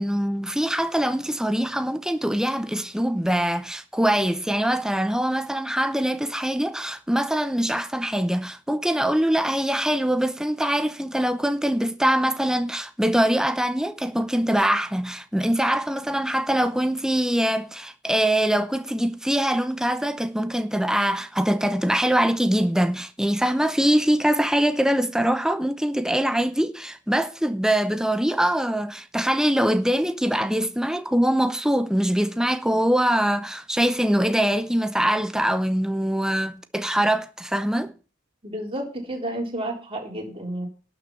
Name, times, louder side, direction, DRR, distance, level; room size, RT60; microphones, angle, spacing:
voice 1, 0.0-37.9, right 1 dB, 5° right, 0.8 m, -23 dB
voice 2, 38.4-40.7, right 1 dB, 30° right, 3.7 m, -31 dB
12.0 x 6.1 x 7.1 m
head